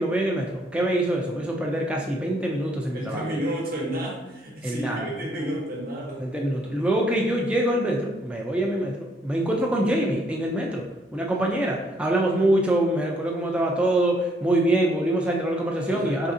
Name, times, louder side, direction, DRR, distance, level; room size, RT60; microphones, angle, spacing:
voice 1, 0.0-3.2 4.6-5.1 6.2-16.3, right 1 dB, 5° right, -1 dB, 0.3 m, -24 dB
voice 2, 2.9-6.2 15.9-16.2, right 1 dB, 55° right, -3 dB, 1.0 m, -31 dB
3.7 x 3.3 x 2.6 m, 1.0 s
head